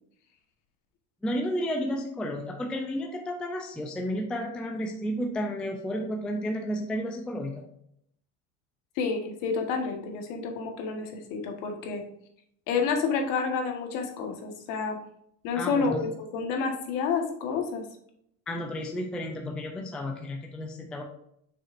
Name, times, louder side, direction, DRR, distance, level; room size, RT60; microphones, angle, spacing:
voice 1, 1.2-7.7 15.5-16.1 18.5-21.0, equal, 5° left, 2 dB, 0.3 m, -32 dB
voice 2, 9.0-12.0 12.7-15.0 15.4-17.8, left 5 dB, 60° left, 3 dB, 1.4 m, -29 dB
6.9 x 5.8 x 2.5 m, 0.72 s
cardioid pair, 160°, 37 cm